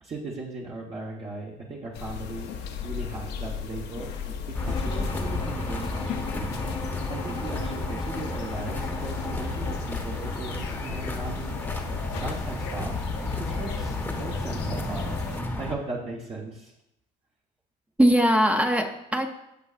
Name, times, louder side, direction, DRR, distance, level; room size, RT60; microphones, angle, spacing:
voice 1, 0.0-6.8 7.1-11.5 12.2-16.7, right 3 dB, 35° right, -4 dB, 1.3 m, -38 dB
sound 1, 1.9-15.4, left 7 dB, 80° left, 1.0 m, -37 dB
sound 2, 4.5-15.7, left 2 dB, 10° left, 1.1 m, -32 dB
Bowed string instrument, 4.6-10.0, left 5 dB, 35° left, 0.7 m, -39 dB
voice 2, 18.0-19.3, equal, 10° right, 5 dB, 0.7 m, -21 dB
14.0 x 5.4 x 2.5 m, 0.85 s
cardioid pair, 110°, 17 cm